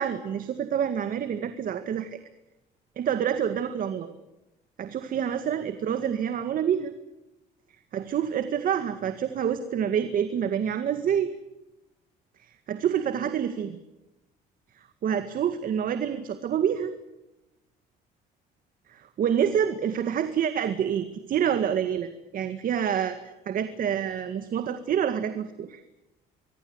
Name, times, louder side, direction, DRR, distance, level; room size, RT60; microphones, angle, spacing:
voice 1, 0.0-2.2 3.0-4.1 4.8-6.9 7.9-11.3 12.4-13.8 15.0-16.9 18.9-25.8, right 8 dB, 55° right, 9 dB, 2.0 m, -27 dB
25.5 x 22.5 x 8.1 m, 0.95 s
cardioid pair, 110°, 17 cm